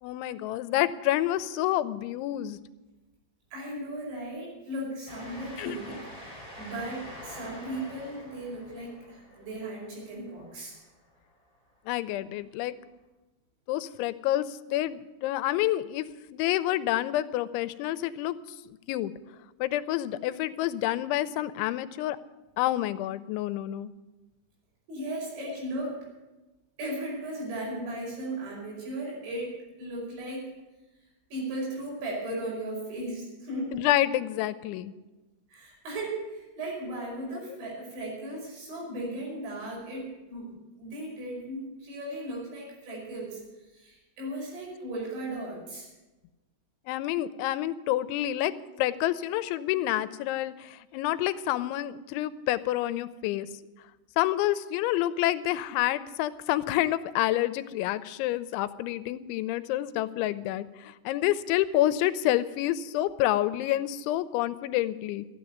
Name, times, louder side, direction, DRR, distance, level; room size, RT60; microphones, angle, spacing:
voice 1, 0.0-2.6 5.6-6.0 8.7-8.8 11.9-12.7 13.7-18.4 18.6-19.1 19.6-22.2 22.6-23.9 33.7-34.9 46.9-53.5 54.2-65.3, left 14 dB, 85° left, 14 dB, 3.0 m, -28 dB
voice 2, 3.5-6.1 6.6-10.7 24.9-26.1 26.8-30.6 31.3-33.7 35.5-45.9, right 1 dB, 75° right, -3 dB, 7.7 m, -36 dB
Train, 5.1-11.2, equal, 10° right, 4.0 m, -46 dB
13.5 x 9.3 x 9.3 m, 1.1 s
omnidirectional pair, 5.3 m